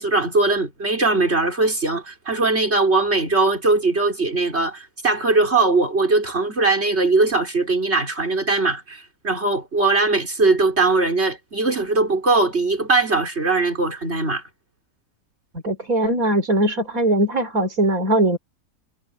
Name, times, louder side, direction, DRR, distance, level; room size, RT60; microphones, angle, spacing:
voice 1, 0.0-14.4, right 3 dB, 45° right, 5.1 m, -20 dB
voice 2, 15.6-18.4, right 1 dB, 65° right, 4.4 m, -20 dB
omnidirectional pair, 1.6 m